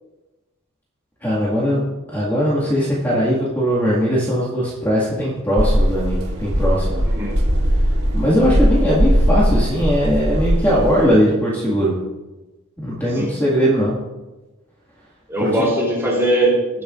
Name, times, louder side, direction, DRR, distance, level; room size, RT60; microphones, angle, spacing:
voice 1, 1.2-1.8 2.1-7.0 7.8-12.0 12.8-13.9 15.4-15.5, equal, 10° left, -7 dB, 1.9 m, -19 dB
sound 1, 5.6-11.0, equal, 90° right, 2.9 m, -19 dB
voice 2, 15.3-16.8, right 1 dB, 10° right, -4 dB, 3.3 m, -20 dB
19.5 x 7.0 x 2.5 m, 1.1 s
head